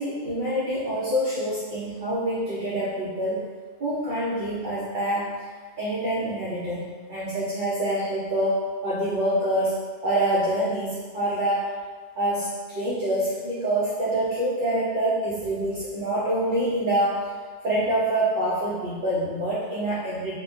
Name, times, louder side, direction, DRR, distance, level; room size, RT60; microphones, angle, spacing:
voice 1, 0.0-3.5 3.8-5.3 5.8-6.8 7.1-9.8 10.0-11.7 12.2-17.2 17.6-20.4, right 1 dB, 55° right, -8 dB, 0.6 m, -26 dB
2.2 x 2.1 x 3.5 m, 1.5 s
omnidirectional pair, 1.2 m